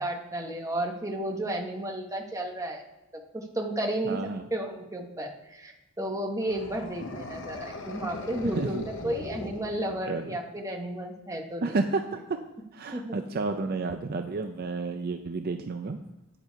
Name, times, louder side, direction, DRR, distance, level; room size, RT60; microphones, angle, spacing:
voice 1, 0.0-2.8 3.1-11.7 12.9-13.2, right 1 dB, 15° right, 2 dB, 1.1 m, -33 dB
voice 2, 4.1-4.5 8.4-9.2 10.1-10.4 11.6-12.5 12.7-16.0, right 3 dB, 45° right, 6 dB, 0.5 m, -31 dB
sound 1, 6.4-10.3, left 2 dB, 55° left, 1.0 m, -40 dB
8.8 x 8.1 x 4.6 m, 0.99 s
head